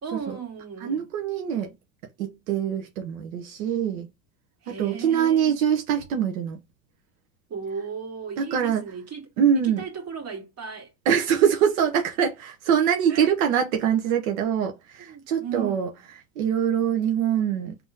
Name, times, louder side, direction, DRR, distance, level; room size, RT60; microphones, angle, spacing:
voice 1, 0.0-1.1 4.6-5.5 7.5-9.2 9.6-10.9 13.1-13.3 15.1-16.0, right 6 dB, 35° right, 2.1 m, -35 dB
voice 2, 0.8-1.7 2.2-4.1 4.7-6.6 8.4-8.9 9.4-9.8 11.1-15.9 16.4-17.8, right 8 dB, 80° right, 1.0 m, -24 dB
3.6 x 3.0 x 3.7 m
supercardioid pair, 100°, 41 cm